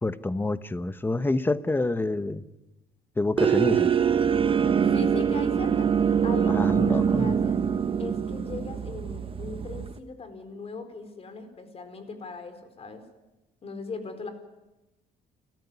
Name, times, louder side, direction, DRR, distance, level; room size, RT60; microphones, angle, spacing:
voice 1, 0.0-2.5 3.2-3.9 6.5-7.4, left 2 dB, 10° left, 13 dB, 1.0 m, -27 dB
sound 1, 3.4-10.0, right 7 dB, 30° right, 1.1 m, -24 dB
voice 2, 4.8-5.9 6.2-7.6 8.0-13.0 13.6-14.3, left 4 dB, 35° left, 8 dB, 4.3 m, -39 dB
29.5 x 14.0 x 9.7 m, 1.0 s
cardioid pair, 110°, 17 cm